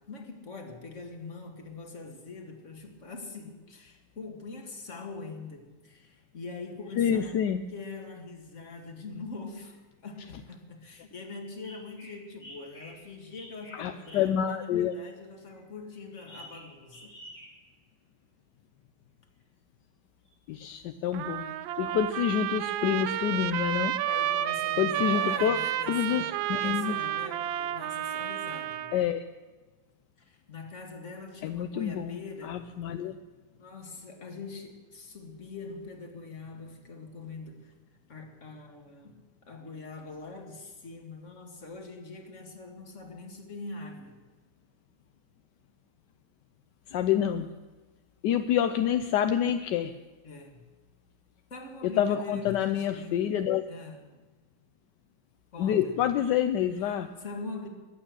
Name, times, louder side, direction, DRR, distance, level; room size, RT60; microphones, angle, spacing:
voice 1, 0.0-7.4 7.7-17.2 24.1-28.9 30.2-32.7 33.6-37.7 38.1-44.2 50.2-50.6 51.5-53.2 53.7-54.0 55.5-56.0 56.8-57.7, left 3 dB, 35° left, 3 dB, 2.1 m, -43 dB
voice 2, 7.0-7.6 13.7-14.9 20.5-21.5 21.8-23.9 24.8-25.6 25.9-27.0 28.9-29.2 31.4-33.2 46.9-47.5 48.2-49.9 51.8-53.6 55.6-57.1, left 9 dB, 70° left, 8 dB, 1.1 m, -27 dB
sound 1, 9.7-9.8 10.2-10.4 11.6-14.4 15.5-17.7 20.3-20.4 20.9-21.3 21.9-22.0, equal, 85° left, 5.6 m, -50 dB
Trumpet, 21.1-29.0, right 12 dB, 75° right, 1.3 m, -31 dB
22.0 x 8.9 x 6.4 m, 1.3 s
omnidirectional pair, 2.3 m